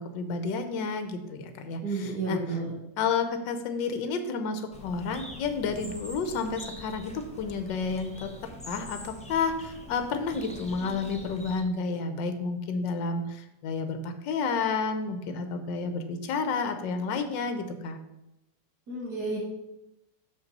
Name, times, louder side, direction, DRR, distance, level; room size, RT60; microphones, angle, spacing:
voice 1, 0.0-2.4 3.0-8.3 8.7-18.0, left 4 dB, 80° left, 8 dB, 1.5 m, -31 dB
voice 2, 1.8-2.7 10.8-11.0 18.9-19.4, right 3 dB, 60° right, -4 dB, 2.2 m, -31 dB
Bird, 4.7-11.6, left 1 dB, 5° left, 0.6 m, -44 dB
6.4 x 5.4 x 5.4 m, 0.94 s
omnidirectional pair, 2.0 m